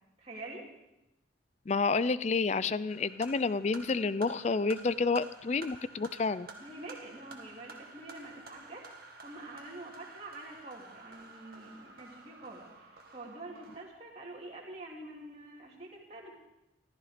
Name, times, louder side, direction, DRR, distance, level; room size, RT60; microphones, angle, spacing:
voice 1, 0.2-0.7 6.6-16.3, right 2 dB, 30° right, -3 dB, 2.7 m, -46 dB
voice 2, 1.7-6.5, left 4 dB, 35° left, 17 dB, 0.4 m, -29 dB
sound 1, 2.9-13.8, right 3 dB, 50° right, 1.9 m, -51 dB
15.5 x 13.0 x 5.0 m, 0.92 s
head